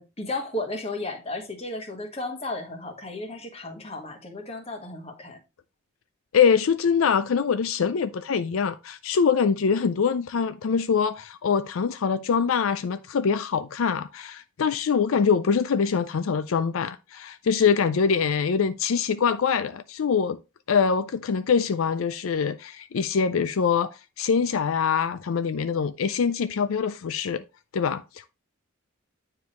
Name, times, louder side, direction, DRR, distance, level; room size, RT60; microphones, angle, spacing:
voice 1, 0.0-5.4, left 2 dB, 30° left, 1.5 m, -34 dB
voice 2, 6.3-20.4 20.7-27.4 27.7-28.3, left 6 dB, 75° left, 0.4 m, -24 dB
9.4 x 4.8 x 3.0 m
head